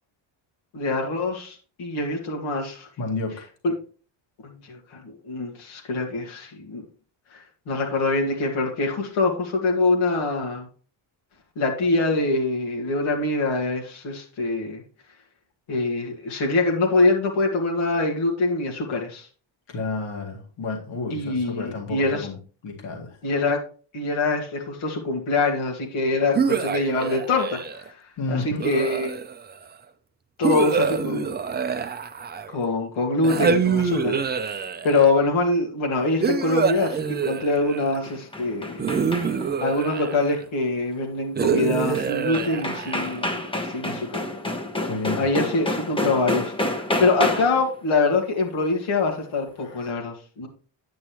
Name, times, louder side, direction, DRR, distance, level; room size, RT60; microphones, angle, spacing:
voice 1, 0.7-2.9 3.6-3.7 4.4-6.8 7.3-10.7 11.6-14.8 15.7-19.3 21.1-22.3 23.2-23.6 23.9-27.9 28.3-29.1 30.4-31.3 32.5-38.8 39.6-43.4 43.7-44.2 45.2-50.5, left 3 dB, 80° left, 0 dB, 2.2 m, -24 dB
voice 2, 3.0-3.5 19.7-22.4 22.6-23.2 28.2-28.7 44.8-45.2 49.6-49.9, left 3 dB, 65° left, 1 dB, 2.2 m, -31 dB
sound 1, 26.3-27.9 28.6-29.5 30.4-32.6 33.2-35.1 36.2-38.0 38.8-40.4 41.4-43.3, right 6 dB, 20° right, 0.4 m, -26 dB
sound 2, 37.8-39.6 41.9-42.0 42.3-47.7, left 1 dB, 10° left, 1.0 m, -29 dB
9.4 x 8.6 x 3.1 m, 0.39 s
cardioid pair, 140°, 47 cm